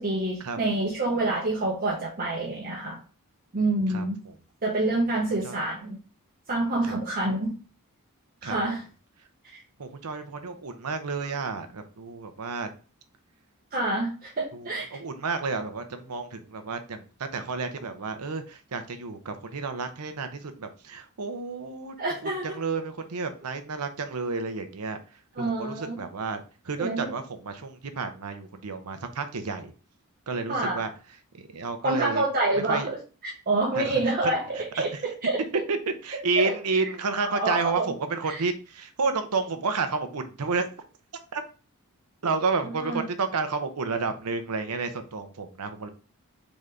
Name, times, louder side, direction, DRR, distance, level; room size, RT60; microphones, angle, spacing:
voice 1, 0.0-3.0 3.5-4.2 4.6-6.0 6.5-7.5 8.4-8.8 9.4-9.6 13.7-15.0 22.0-22.5 25.4-26.0 26.8-27.1 30.5-30.8 31.8-35.6 36.4-36.5 36.8-36.9 37.3-37.9 38.3-38.4 42.8-43.0, right 2 dB, 40° right, -3 dB, 0.9 m, -27 dB
voice 2, 3.9-4.3 5.4-5.6 6.8-7.0 8.4-8.8 9.8-12.7 14.5-21.9 22.2-25.0 25.4-29.7 30.3-30.9 31.3-32.2 32.7-32.9 33.7-35.0 35.7-35.8 36.0-40.7 41.3-41.4 42.2-45.9, right 4 dB, 90° right, 8 dB, 0.8 m, -31 dB
4.0 x 3.8 x 3.3 m, 0.36 s
head